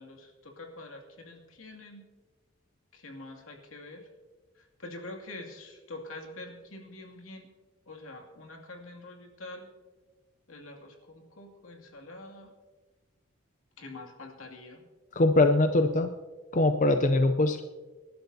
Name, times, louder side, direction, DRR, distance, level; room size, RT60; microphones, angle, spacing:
voice 1, 0.0-2.1 2.9-4.0 4.6-7.5 7.9-9.7 10.5-12.5 13.8-14.8, left 2 dB, 80° left, 2 dB, 2.5 m, -45 dB
voice 2, 15.2-16.1 16.5-17.6, left 2 dB, 35° left, 7 dB, 0.5 m, -22 dB
26.0 x 12.0 x 2.8 m, 1.3 s
head